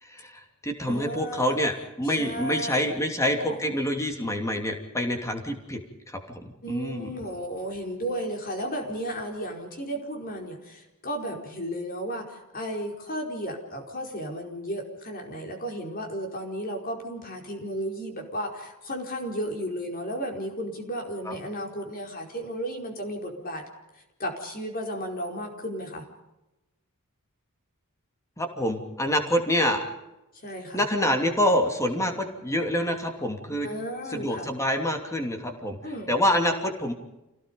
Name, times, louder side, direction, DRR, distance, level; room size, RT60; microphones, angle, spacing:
voice 1, 0.0-5.8 6.1-7.1 21.2-21.3 28.4-29.8 30.7-33.7 34.1-35.8 36.1-36.9, equal, 15° left, 4 dB, 2.9 m, -26 dB
voice 2, 0.8-1.6 2.0-3.0 3.4-3.6 6.6-23.6 24.2-26.0 30.3-30.8 33.6-34.5 35.8-36.1, equal, 40° left, 2 dB, 4.8 m, -34 dB
28.0 x 18.0 x 5.4 m, 0.95 s
head